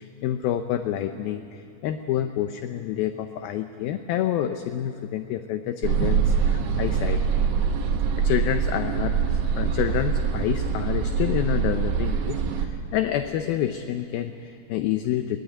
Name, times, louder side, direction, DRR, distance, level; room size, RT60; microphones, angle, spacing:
voice 1, 0.0-7.2 8.2-15.4, left 11 dB, 75° left, 8 dB, 2.3 m, -28 dB
sound 1, 5.8-12.7, right 6 dB, 60° right, 2.2 m, -24 dB
22.5 x 18.0 x 9.7 m, 2.6 s
omnidirectional pair, 4.9 m